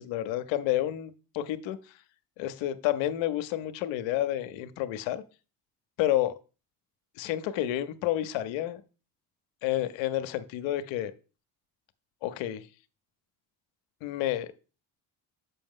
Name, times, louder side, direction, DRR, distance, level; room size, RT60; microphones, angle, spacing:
voice 1, 0.0-2.0 2.4-5.2 6.0-6.3 7.2-8.8 9.6-11.1 12.2-12.7 14.0-14.5, left 13 dB, 80° left, 13 dB, 0.7 m, -30 dB
6.8 x 5.6 x 3.6 m, 0.34 s
supercardioid pair, 60°, 45 cm